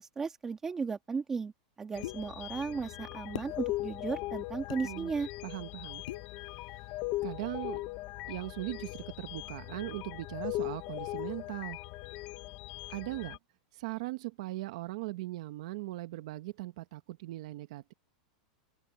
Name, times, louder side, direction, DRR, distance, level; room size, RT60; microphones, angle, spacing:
voice 1, 0.0-1.5 1.8-5.3, right 5 dB, 10° right, 1.7 m, -35 dB
sound 1, 1.9-13.4, left 19 dB, 35° left, 0.5 m, -39 dB
sound 2, 2.0-2.2 3.3-3.6 4.7-4.8 6.1-6.3, left 15 dB, 65° left, 5.0 m, -39 dB
voice 2, 5.4-6.0 7.2-7.8 8.3-11.8 12.9-13.4 13.7-17.9, right 19 dB, 55° right, 1.1 m, -39 dB
open air
supercardioid pair, 175°, 4 cm